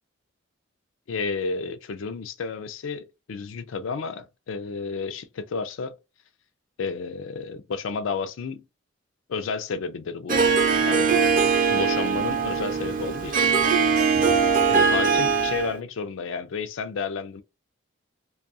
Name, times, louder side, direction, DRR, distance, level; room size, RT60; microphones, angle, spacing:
voice 1, 1.1-5.9 6.8-8.6 9.3-10.4 10.8-11.1 11.7-13.5 14.7-17.4, left 5 dB, 75° left, 0.4 m, -31 dB
Harp, 10.3-15.8, right 5 dB, 45° right, 0.5 m, -21 dB
2.3 x 2.2 x 2.6 m
head